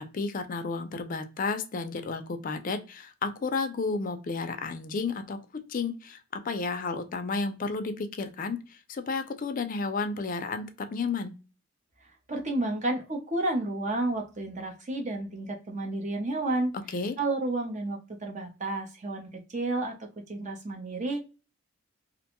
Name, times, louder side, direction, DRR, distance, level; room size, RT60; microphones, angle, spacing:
voice 1, 0.0-5.4 5.7-8.6 8.9-11.3 16.9-17.2, left 4 dB, 45° left, 8 dB, 0.4 m, -32 dB
voice 2, 12.3-16.7 17.2-21.2, right 2 dB, 40° right, 3 dB, 0.6 m, -31 dB
2.5 x 2.2 x 2.9 m, 0.31 s
head